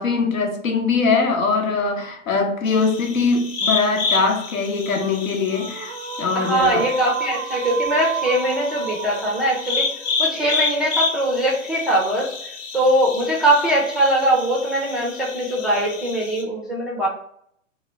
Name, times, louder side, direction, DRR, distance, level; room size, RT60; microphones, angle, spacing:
voice 1, 0.0-6.9, left 4 dB, 80° left, 3 dB, 0.9 m, -22 dB
sound 1, 2.6-16.4, left 4 dB, 35° left, 0.8 m, -30 dB
sound 2, 5.5-10.9, right 7 dB, 90° right, 0.5 m, -31 dB
voice 2, 6.3-9.9 10.2-17.1, right 1 dB, ahead, -3 dB, 0.4 m, -21 dB
2.9 x 2.6 x 3.1 m, 0.70 s
hypercardioid pair, 110°, 40 cm